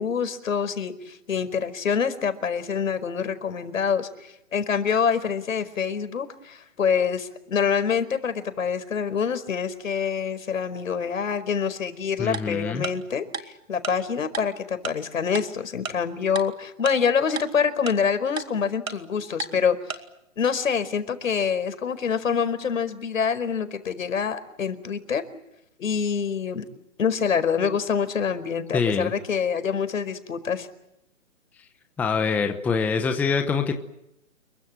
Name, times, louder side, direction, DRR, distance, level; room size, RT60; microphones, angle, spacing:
voice 1, 0.0-19.8 20.4-25.2 25.8-26.6 27.0-30.7, left 6 dB, 70° left, 10 dB, 4.9 m, -26 dB
voice 2, 12.2-12.9 28.7-29.1 31.6-31.7 32.0-33.7, left 5 dB, 5° left, 6 dB, 0.9 m, -25 dB
Tick-tock, 12.3-12.4 12.8-12.9 13.3-13.4 13.8-13.9 14.3-14.4 14.8-14.9 15.3-15.4 15.8-15.9 16.3-16.4 16.8-16.9 17.4-17.5 17.9-18.0 18.4-18.5 18.9-19.0 19.4-19.5 19.9-20.0, right 5 dB, 90° right, 3.8 m, -31 dB
29.0 x 23.0 x 7.6 m, 0.86 s
hypercardioid pair, 155°, 40 cm